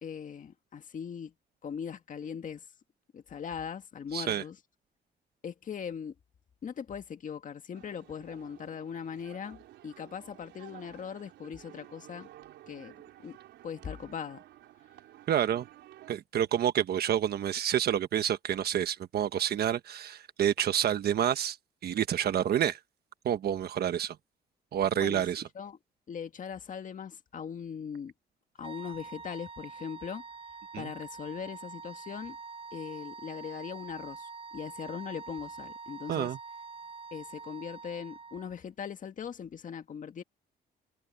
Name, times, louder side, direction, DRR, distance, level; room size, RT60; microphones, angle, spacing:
voice 1, 0.0-1.3 1.6-2.7 3.1-4.6 5.4-6.1 6.6-12.3 12.7-13.4 13.6-14.4 24.9-25.2 25.6-25.8 26.1-28.1 28.6-30.2 30.8-32.4 32.7-36.3 37.1-40.2, left 7 dB, 45° left, 2.0 m, -40 dB
voice 2, 4.1-4.4 15.3-15.7 16.1-21.6 21.8-22.8 23.2-24.2 24.7-25.4 30.7-30.9 36.1-36.4, right 10 dB, 60° right, 1.3 m, -28 dB
sound 1, 7.7-16.2, right 14 dB, 85° right, 4.2 m, -53 dB
sound 2, 28.6-38.6, right 4 dB, 30° right, 6.2 m, -45 dB
cardioid pair, 110°, 18 cm